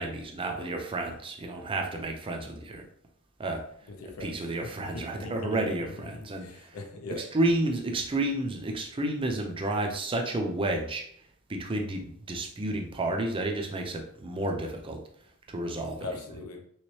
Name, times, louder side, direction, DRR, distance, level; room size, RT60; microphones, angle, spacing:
voice 1, 0.0-2.8 3.4-3.6 4.2-6.7 7.3-11.1 11.5-15.0 15.5-16.1, right 2 dB, 25° right, 3 dB, 0.5 m, -31 dB
voice 2, 3.9-7.2 16.0-16.6, left 2 dB, 80° left, 3 dB, 0.6 m, -41 dB
3.1 x 3.0 x 3.0 m, 0.66 s
head